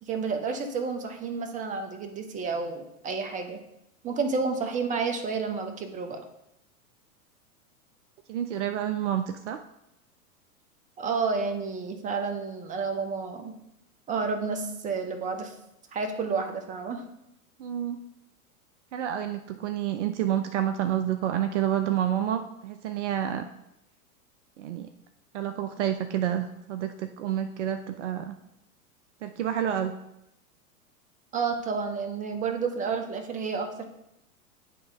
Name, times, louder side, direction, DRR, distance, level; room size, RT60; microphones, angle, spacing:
voice 1, 0.0-3.6 4.0-6.2 11.0-13.5 14.1-15.5 15.9-17.0 31.3-33.9, right 5 dB, 15° right, 5 dB, 0.8 m, -30 dB
voice 2, 8.3-9.6 17.6-18.0 18.9-23.4 24.6-24.9 25.3-28.4 29.2-29.9, right 10 dB, 50° right, 8 dB, 0.6 m, -29 dB
8.5 x 3.5 x 5.3 m, 0.84 s
figure-of-eight pair, 100°, 45 cm